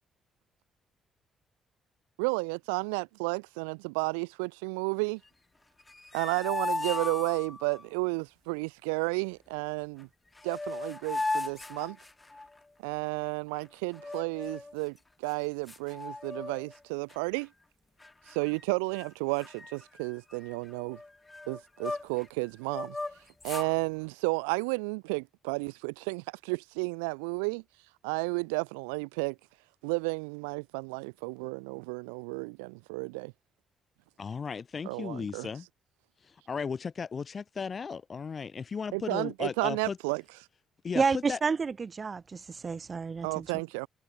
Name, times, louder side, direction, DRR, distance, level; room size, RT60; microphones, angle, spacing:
voice 1, 2.2-5.2 6.1-10.1 10.4-12.0 12.8-17.5 18.3-21.0 21.5-23.0 23.4-27.6 28.0-29.4 29.8-33.3 34.8-35.5 38.9-40.2 43.2-43.9, right 33 dB, 75° right, 0.7 m, -32 dB
sound 1, 5.8-7.8 10.0-10.1 10.4-12.6 13.9-14.8 15.3-15.4 15.7-16.8 17.1-17.4 18.0-18.6 18.9-19.1 19.4-22.3 22.7-23.7, left 2 dB, 20° left, 4.9 m, -37 dB
voice 2, 34.2-35.7 36.5-40.0 40.8-41.4, left 5 dB, 40° left, 3.4 m, -35 dB
voice 3, 40.9-43.5, right 5 dB, 35° right, 5.4 m, -30 dB
figure-of-eight pair, 45°, 0 cm